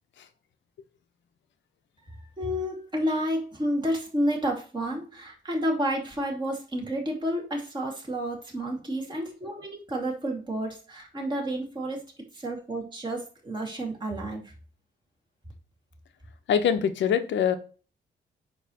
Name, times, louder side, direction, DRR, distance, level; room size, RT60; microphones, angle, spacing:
voice 1, 2.4-12.0 12.3-14.5, equal, 25° right, -1 dB, 2.5 m, -30 dB
voice 2, 16.5-17.6, left 8 dB, 85° left, 10 dB, 1.0 m, -23 dB
8.8 x 3.2 x 6.3 m, 0.38 s
wide cardioid pair, 140°, 19 cm